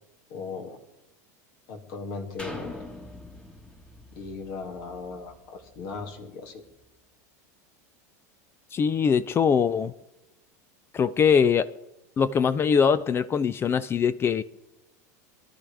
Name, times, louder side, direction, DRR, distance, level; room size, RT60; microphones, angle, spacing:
voice 1, 0.3-0.8 1.7-2.9 4.1-6.6, left 4 dB, 65° left, 3 dB, 2.6 m, -37 dB
sound 1, 2.4-6.2 6.7-6.8, left 1 dB, 10° left, 1.6 m, -43 dB
voice 2, 8.7-9.9 10.9-11.7 12.2-14.4, left 6 dB, 25° left, 17 dB, 0.5 m, -22 dB
23.5 x 12.0 x 3.5 m, 0.92 s
supercardioid pair, 110°, 9 cm